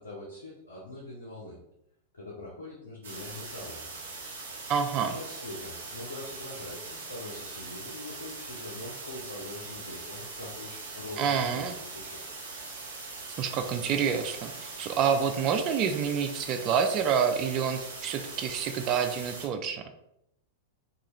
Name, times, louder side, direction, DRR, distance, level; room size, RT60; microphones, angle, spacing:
voice 1, 0.0-1.6 2.1-3.9 5.1-12.2, left 2 dB, 75° left, -6 dB, 0.8 m, -43 dB
sound 1, 3.0-19.5, right 3 dB, 60° right, 0.8 m, -41 dB
voice 2, 4.7-5.2 11.2-11.7 13.4-19.8, right 7 dB, 35° right, 7 dB, 0.4 m, -28 dB
2.7 x 2.4 x 3.0 m, 0.80 s
figure-of-eight pair, 95°, 0 cm